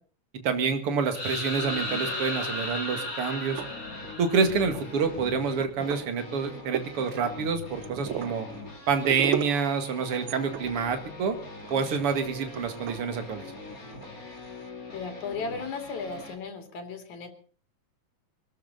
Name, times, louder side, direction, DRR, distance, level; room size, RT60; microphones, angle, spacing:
voice 1, 0.4-3.6 4.2-8.5 8.9-11.4 11.7-13.4, right 5 dB, 50° right, 7 dB, 2.9 m, -27 dB
sound 1, 1.1-5.0, left 1 dB, 55° left, 6.5 m, -34 dB
sound 2, 1.5-16.4, left 3 dB, 30° left, 3.9 m, -43 dB
sound 3, 2.4-2.9 3.4-4.3 4.7-14.7, right 9 dB, 75° right, 1.1 m, -39 dB
voice 2, 14.9-17.3, left 4 dB, 75° left, 5 dB, 4.0 m, -35 dB
24.5 x 13.5 x 4.0 m, 0.42 s
omnidirectional pair, 3.3 m